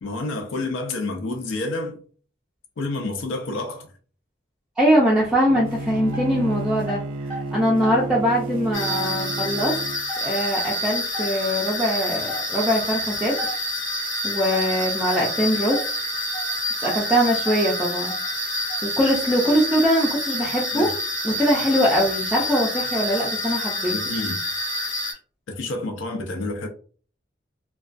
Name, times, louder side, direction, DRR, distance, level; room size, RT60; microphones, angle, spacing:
voice 1, 0.0-2.0 2.8-3.9 20.7-20.9 23.9-24.4 25.5-26.7, left 2 dB, 70° left, 0.5 m, -29 dB
voice 2, 4.8-9.7 10.2-13.5 14.2-15.8 16.8-18.1 18.8-20.9 21.2-23.9, equal, 5° right, 0.4 m, -22 dB
Bowed string instrument, 5.5-10.0, right 3 dB, 80° right, 0.3 m, -31 dB
sound 1, 5.7-6.4 6.8-8.1 8.4-9.1 9.6-10.5 10.9-11.0 11.1-11.4 12.0-12.1 12.3-12.5 12.8-12.9 13.4-13.7 14.5-15.4 15.6-17.1 17.4-17.7 18.1-18.9, left 1 dB, 25° left, 0.7 m, -34 dB
sound 2, 8.7-25.1, left 1 dB, 85° left, 1.2 m, -28 dB
2.3 x 2.2 x 2.4 m
head